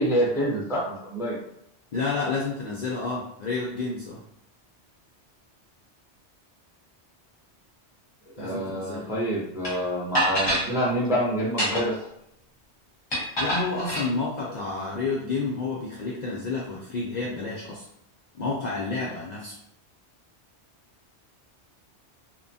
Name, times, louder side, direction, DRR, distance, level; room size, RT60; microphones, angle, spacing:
voice 1, 0.0-1.4 8.3-11.9, equal, 5° right, -4 dB, 0.4 m, -26 dB
voice 2, 1.9-4.2 8.4-9.1 13.4-17.8 18.3-19.6, left 3 dB, 60° left, -4 dB, 0.5 m, -30 dB
sound 1, 9.6-9.7 10.1-10.7 11.4-12.0 13.1-14.1, equal, 25° left, 0.8 m, -26 dB
2.9 x 2.1 x 2.6 m, 0.76 s
omnidirectional pair, 1.2 m